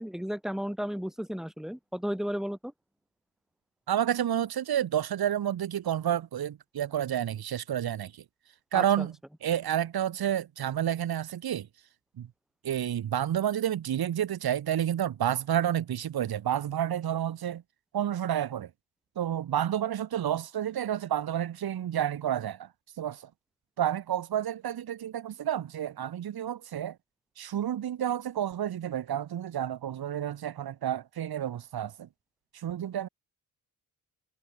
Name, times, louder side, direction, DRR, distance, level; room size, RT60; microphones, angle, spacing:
voice 1, 0.0-2.7 8.7-9.1, equal, ahead, 4.3 m, -34 dB
voice 2, 3.9-8.2 8.7-9.1 9.4-11.7 12.2-12.3 12.6-17.6 17.9-18.7 19.2-22.7 23.0-23.3 23.8-27.0 27.4-32.1 32.5-33.1, right 10 dB, 70° right, 1.9 m, -30 dB
cardioid pair, 75°, 39 cm